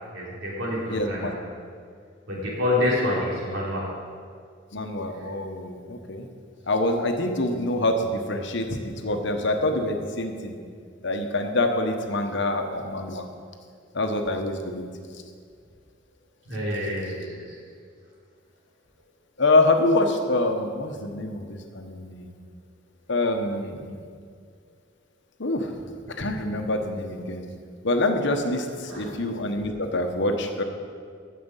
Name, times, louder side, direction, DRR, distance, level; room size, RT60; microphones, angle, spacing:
voice 1, 0.1-1.3 2.3-3.9 5.2-5.3 16.4-17.6 28.9-29.1, left 1 dB, 85° right, -4 dB, 3.4 m, -27 dB
voice 2, 0.9-1.3 4.7-6.3 6.7-10.6 11.0-13.2 13.9-14.9 19.4-22.3 23.1-23.9 25.4-25.8 26.2-27.4 27.8-30.6, left 2 dB, 65° left, 5 dB, 1.1 m, -25 dB
9.3 x 6.7 x 8.2 m, 2.1 s
head